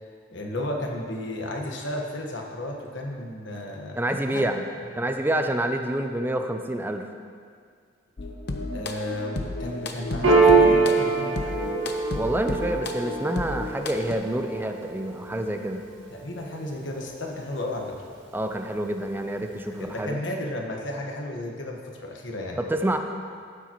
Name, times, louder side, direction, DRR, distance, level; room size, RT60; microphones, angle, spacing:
voice 1, 0.3-4.4 5.0-5.1 8.7-11.7 16.1-18.0 19.7-22.6, left 1 dB, 75° left, 1 dB, 1.3 m, -33 dB
voice 2, 4.0-4.7 4.9-7.1 12.1-15.8 18.3-20.2 22.6-23.0, right 1 dB, 10° right, 5 dB, 0.5 m, -27 dB
sound 1, 8.2-14.1, left 2 dB, 60° left, 0.8 m, -33 dB
Piano, 10.2-17.2, right 4 dB, 90° right, 1.8 m, -24 dB
13.5 x 8.9 x 3.0 m, 2.1 s
head